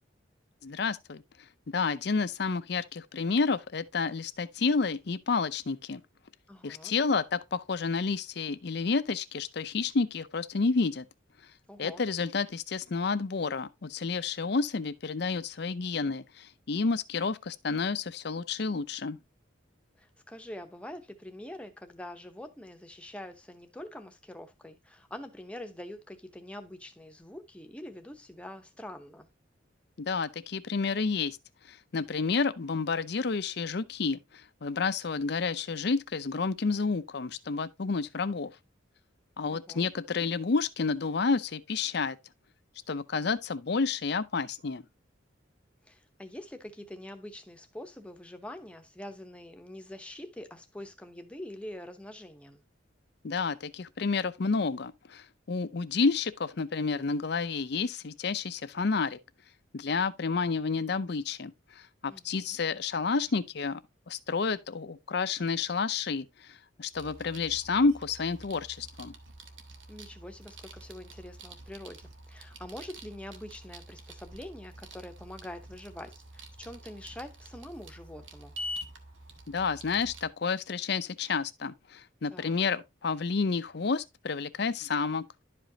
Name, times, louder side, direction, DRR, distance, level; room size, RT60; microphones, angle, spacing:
voice 1, 0.6-1.2 1.7-6.0 6.6-11.1 11.8-19.2 30.0-31.4 31.7-38.5 39.4-42.2 42.9-44.8 53.2-59.2 59.7-63.8 64.1-69.1 79.5-85.2, left 4 dB, 55° left, 0.6 m, -30 dB
voice 2, 6.5-6.9 11.7-12.1 20.0-29.3 39.5-39.9 45.9-52.6 62.1-62.6 69.9-78.5 82.3-82.6, left 1 dB, 5° left, 0.9 m, -45 dB
sound 1, 66.9-80.3, equal, 85° right, 1.3 m, -46 dB
11.5 x 5.1 x 2.7 m
head